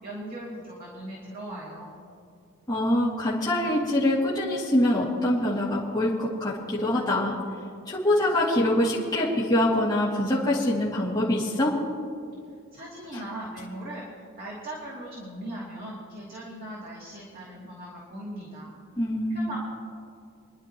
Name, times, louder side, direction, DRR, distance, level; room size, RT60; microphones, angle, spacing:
voice 1, 0.0-1.9 12.7-14.1 14.4-18.7 19.3-19.6, right 1 dB, 45° right, -6 dB, 2.6 m, -39 dB
voice 2, 2.7-7.3 7.9-11.7 19.0-19.5, left 1 dB, 20° left, -8 dB, 2.4 m, -24 dB
29.5 x 11.0 x 3.0 m, 2.3 s
head